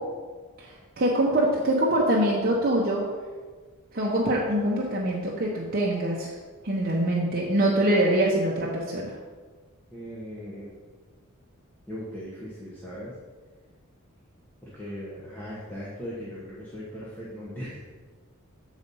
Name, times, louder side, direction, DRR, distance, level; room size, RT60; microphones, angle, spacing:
voice 1, 0.6-3.0 3.9-6.3 6.6-9.2, right 1 dB, 45° right, -4 dB, 0.8 m, -24 dB
voice 2, 9.9-10.7 11.9-13.1 14.6-17.8, equal, 10° left, -9 dB, 1.2 m, -38 dB
8.0 x 4.1 x 5.4 m, 1.4 s
head